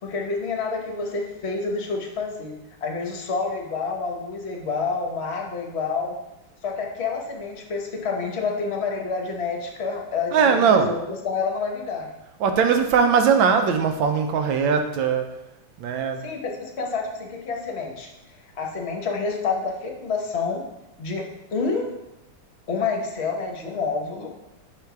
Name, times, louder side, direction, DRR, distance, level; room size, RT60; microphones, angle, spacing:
voice 1, 0.0-6.2 6.6-12.1 16.2-18.1 18.6-20.6 21.0-21.9 22.7-24.3, left 4 dB, 45° left, 1 dB, 0.9 m, -28 dB
voice 2, 10.3-10.9 12.4-15.3 15.8-16.3, right 6 dB, 90° right, 6 dB, 1.4 m, -20 dB
5.7 x 3.9 x 4.7 m, 0.94 s
omnidirectional pair, 2.1 m